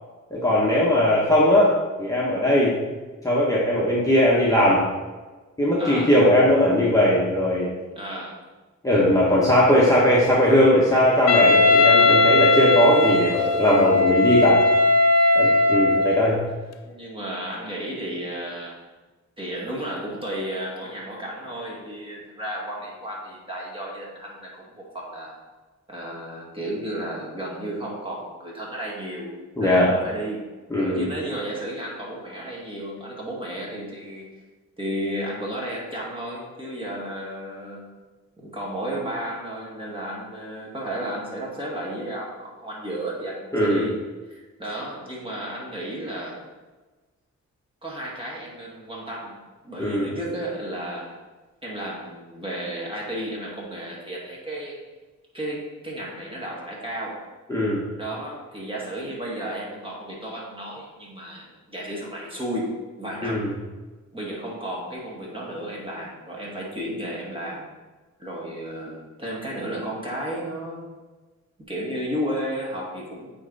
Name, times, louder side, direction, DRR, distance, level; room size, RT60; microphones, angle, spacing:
voice 1, 0.3-1.7 2.0-2.8 3.2-4.8 5.6-7.7 8.8-14.6 15.3-16.4 29.6-29.9 30.7-31.0 43.5-43.8 49.8-50.1 57.5-57.8 63.2-63.5, left 1 dB, 10° left, -6 dB, 1.3 m, -19 dB
voice 2, 5.8-6.1 8.0-8.4 16.8-18.8 19.4-25.4 25.9-29.3 29.6-30.5 30.7-34.3 34.8-37.9 38.4-43.9 44.3-46.4 47.8-49.3 49.6-51.1 51.6-54.8 55.3-57.2 58.0-63.5 64.1-67.6 68.2-70.9 71.7-73.3, right 1 dB, 15° right, -4 dB, 2.2 m, -33 dB
Wind instrument woodwind instrument, 11.3-16.3, left 2 dB, 55° left, 0.7 m, -18 dB
8.7 x 3.4 x 4.1 m, 1.3 s
cardioid pair, 75°, 30 cm